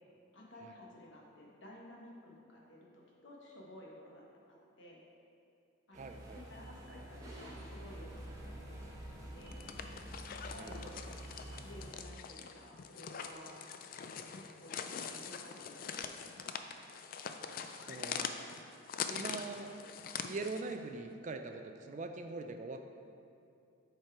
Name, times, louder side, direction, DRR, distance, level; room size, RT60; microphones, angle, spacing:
voice 1, 0.3-5.0 5.9-9.6 10.5-11.1 11.6-13.6 14.1-16.7, left 1 dB, 65° left, -2 dB, 1.2 m, -54 dB
sound 1, 5.9-11.9, right 1 dB, 15° right, 0.9 m, -48 dB
voice 2, 5.9-6.4 10.6-11.0 17.9-18.3 19.1-19.7 20.2-22.8, right 3 dB, 35° right, 6 dB, 0.3 m, -42 dB
sound 2, 9.4-20.7, left 6 dB, 45° left, 0.3 m, -43 dB
7.8 x 4.5 x 4.6 m, 2.5 s
head